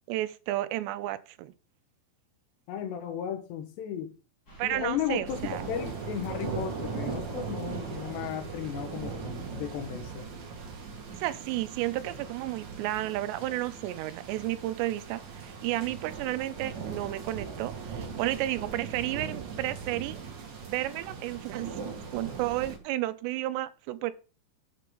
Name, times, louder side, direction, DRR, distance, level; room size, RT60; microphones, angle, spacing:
voice 1, 0.1-1.5 4.6-5.6 11.2-20.2 20.7-21.8 22.1-24.1, right 15 dB, 90° right, 2.9 m, -32 dB
voice 2, 2.7-4.1 4.6-10.3, left 9 dB, 80° left, 3.4 m, -35 dB
sound 1, 4.5-11.1, right 2 dB, 25° left, 3.5 m, -51 dB
sound 2, 5.2-22.8, right 5 dB, 50° right, 2.9 m, -39 dB
10.5 x 7.4 x 3.8 m
omnidirectional pair, 4.9 m